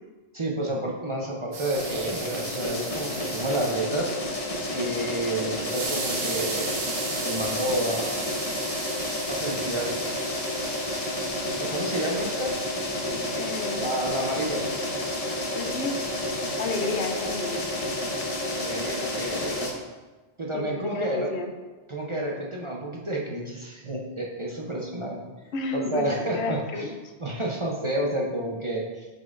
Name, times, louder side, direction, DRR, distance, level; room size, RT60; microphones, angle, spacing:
voice 1, 0.3-4.1 4.7-6.8 7.2-8.1 9.3-9.9 11.6-12.5 13.8-14.6 18.6-19.7 20.4-21.3 21.9-25.2 25.7-26.9 27.2-29.1, right 1 dB, 35° right, -2 dB, 0.6 m, -30 dB
sound 1, 1.5-3.8 5.6-14.0, right 4 dB, 65° right, 1.1 m, -37 dB
sound 2, 1.7-19.7, left 1 dB, 35° left, 0.8 m, -30 dB
voice 2, 13.0-13.9 15.5-16.0 16.6-17.7 20.5-21.5 25.5-27.1, left 3 dB, 75° left, 5 dB, 0.9 m, -31 dB
7.6 x 5.3 x 2.5 m, 1.3 s
omnidirectional pair, 1.2 m